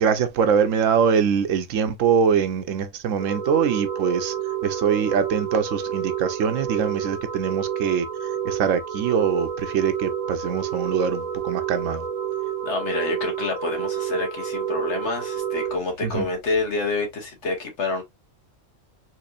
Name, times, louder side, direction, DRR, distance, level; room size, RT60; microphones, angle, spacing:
voice 1, 0.0-4.3 4.6-8.1 8.4-12.0 16.0-16.2, right 7 dB, 85° right, 1.1 m, -23 dB
sound 1, 3.2-15.8, right 9 dB, 45° right, 0.5 m, -29 dB
voice 2, 12.6-18.0, left 3 dB, 60° left, 1.7 m, -27 dB
4.3 x 2.9 x 2.4 m
omnidirectional pair, 1.3 m